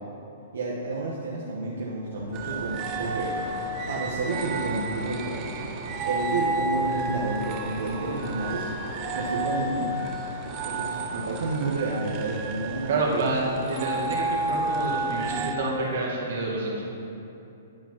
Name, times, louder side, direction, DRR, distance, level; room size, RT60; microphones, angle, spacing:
voice 1, 0.5-3.4 3.9-5.5 6.0-8.7 9.1-9.9 10.6-13.3, right 3 dB, 75° right, -5 dB, 1.2 m, -30 dB
sound 1, 2.2-9.6, left 2 dB, 35° left, 1.3 m, -41 dB
sound 2, 2.3-15.5, right 2 dB, 20° right, 0.5 m, -32 dB
voice 2, 12.9-16.8, right 2 dB, 50° right, -4 dB, 2.2 m, -28 dB
10.0 x 4.7 x 6.0 m, 2.8 s
hypercardioid pair, 175°, 0 cm